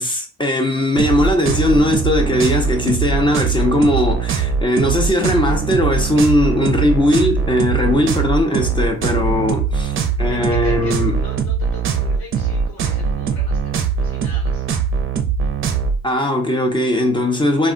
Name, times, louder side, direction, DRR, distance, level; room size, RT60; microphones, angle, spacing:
voice 1, 0.0-11.2 16.0-17.7, left 1 dB, 15° left, 0.6 m, -18 dB
sound 1, 1.0-16.0, right 6 dB, 45° right, 0.5 m, -21 dB
voice 2, 10.3-14.7, left 4 dB, 55° left, 1.3 m, -38 dB
2.3 x 2.2 x 3.7 m
cardioid pair, 90°, 30 cm